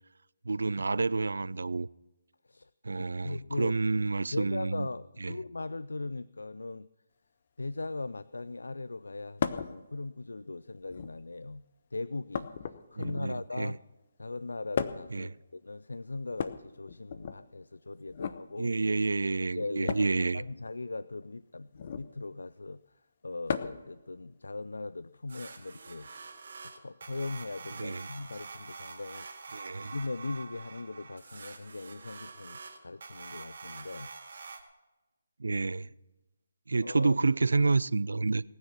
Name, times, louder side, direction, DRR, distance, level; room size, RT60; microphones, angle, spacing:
voice 1, 0.5-1.9 2.8-4.9 5.2-5.3 13.0-13.7 15.1-15.3 18.6-20.4 27.8-28.1 29.5-29.9 35.4-35.9 36.7-38.4, right 3 dB, 70° right, 0.4 m, -29 dB
voice 2, 3.2-6.9 7.6-11.6 11.9-12.5 12.9-13.8 14.2-18.7 19.6-20.0 20.3-22.8 23.2-26.1 26.8-29.3 29.9-34.1 36.8-37.1, left 3 dB, 75° left, 0.4 m, -39 dB
sound 1, 9.4-9.7 10.8-11.3 12.3-13.4 14.7-15.2 16.3-17.4 18.1-18.4 19.9-20.2 21.7-22.1 23.5-23.9 25.3-25.4 26.7-26.8, left 7 dB, 45° left, 0.8 m, -35 dB
sound 2, 25.3-34.6, right 4 dB, 55° right, 2.1 m, -46 dB
19.0 x 9.6 x 6.0 m
figure-of-eight pair, 145°, 0 cm